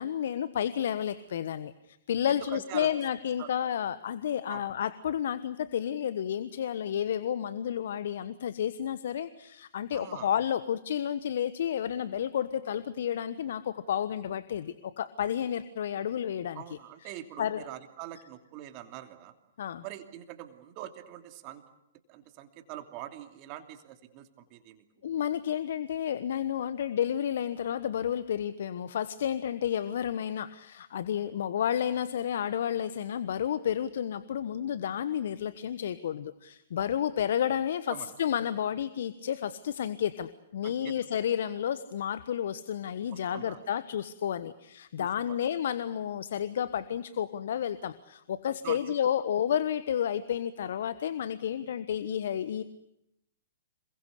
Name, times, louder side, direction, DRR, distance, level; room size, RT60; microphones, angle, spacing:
voice 1, 0.0-17.1 17.4-17.6 19.6-19.8 25.0-52.6, left 9 dB, 60° left, 14 dB, 1.2 m, -31 dB
voice 2, 2.3-2.9 3.4-3.5 4.5-4.6 9.9-10.3 16.5-19.3 19.8-21.6 22.1-24.9 37.9-38.1 40.6-40.9 43.1-43.6 45.0-45.4 48.6-48.8, right 13 dB, 40° right, 7 dB, 2.8 m, -44 dB
27.5 x 22.5 x 8.3 m, 0.80 s
figure-of-eight pair, 115°, 0 cm